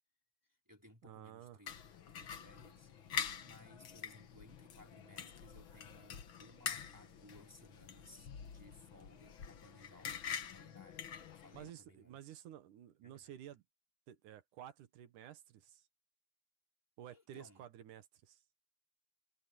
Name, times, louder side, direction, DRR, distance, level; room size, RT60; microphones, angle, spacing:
voice 1, 0.4-1.8 2.1-2.9 3.4-12.2 13.0-13.3 17.1-17.7, left 1 dB, 5° right, 3.8 m, -62 dB
voice 2, 1.0-1.6 11.5-13.6 14.1-15.9 17.0-18.4, right 11 dB, 70° right, 2.6 m, -53 dB
sound 1, 1.7-11.7, left 8 dB, 55° left, 1.5 m, -46 dB
omnidirectional pair, 4.0 m